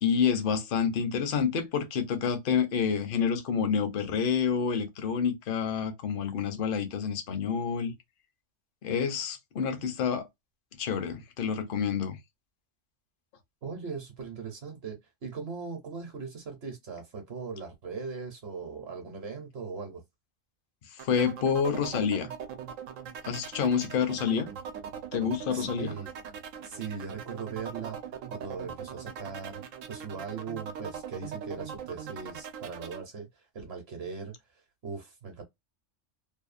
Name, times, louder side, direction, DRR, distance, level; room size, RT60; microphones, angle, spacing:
voice 1, 0.0-7.9 8.8-10.3 10.8-12.2 21.0-22.3 23.2-24.5 25.1-26.0, left 7 dB, 55° left, 0.7 m, -28 dB
voice 2, 13.6-20.0 25.5-26.1 26.6-28.0 28.3-29.6 29.9-35.4, right 5 dB, 60° right, 0.9 m, -39 dB
sound 1, 21.0-33.0, right 8 dB, 90° right, 0.9 m, -41 dB
2.7 x 2.3 x 2.4 m
omnidirectional pair, 1.3 m